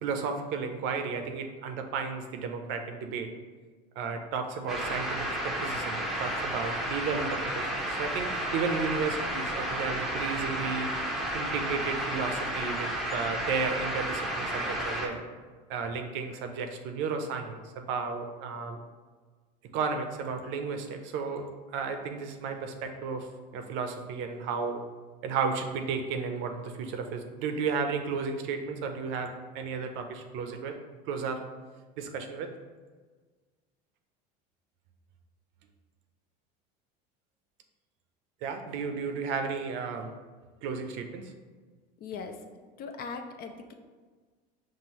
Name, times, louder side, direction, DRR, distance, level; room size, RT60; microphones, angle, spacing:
voice 1, 0.0-3.3 4.0-10.9 11.3-15.2 15.7-18.8 19.7-24.8 25.2-30.8 31.0-31.4 32.0-32.5 38.4-40.1 40.6-41.3, right 5 dB, 60° right, 6 dB, 0.6 m, -33 dB
sound 1, 4.7-15.1, right 1 dB, ahead, 0.7 m, -32 dB
voice 2, 42.0-42.4 42.8-43.7, left 5 dB, 45° left, 6 dB, 0.5 m, -39 dB
5.4 x 2.5 x 3.0 m, 1.4 s
supercardioid pair, 100°, 21 cm